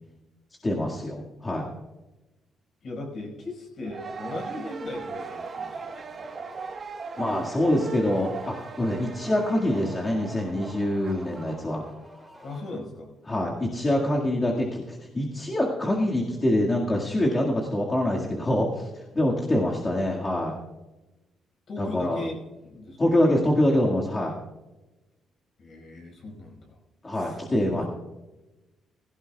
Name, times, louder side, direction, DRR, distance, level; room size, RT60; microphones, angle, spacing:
voice 1, 0.6-1.7 7.2-11.8 13.3-20.6 21.8-22.2 23.0-24.3 27.0-27.8, left 1 dB, 25° left, -2 dB, 1.9 m, -25 dB
voice 2, 2.8-5.9 6.1-6.2 12.4-13.1 19.3-20.0 21.7-23.2 25.6-26.8 27.1-27.4, left 2 dB, 55° left, 1 dB, 5.1 m, -38 dB
sound 1, 3.8-11.5, right 5 dB, 45° right, 1.3 m, -38 dB
sound 2, 4.8-13.1, equal, 10° left, 3.1 m, -49 dB
16.5 x 16.0 x 2.3 m, 1.1 s
cardioid pair, 90°, 0 cm